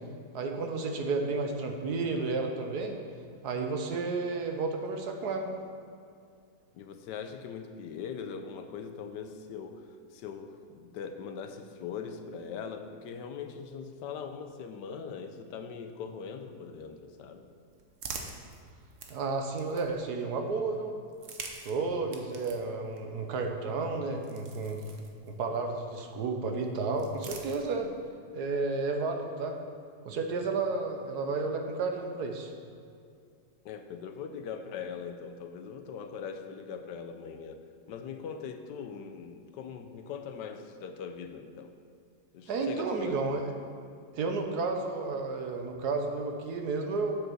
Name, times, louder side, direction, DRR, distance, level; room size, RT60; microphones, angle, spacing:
voice 1, 0.3-3.0 3.4-5.5 19.1-21.0 21.6-24.8 25.3-27.9 28.3-29.6 30.0-32.5 42.5-43.4 44.1-47.2, right 3 dB, 70° right, 4 dB, 1.4 m, -32 dB
voice 2, 6.7-17.5 33.6-41.7 42.3-43.4, left 6 dB, 80° left, 7 dB, 1.3 m, -41 dB
sound 1, 17.2-20.2 21.0-25.6 26.6-28.1, right 4 dB, 50° right, 1.1 m, -47 dB
8.2 x 6.7 x 6.2 m, 2.3 s
omnidirectional pair, 1.8 m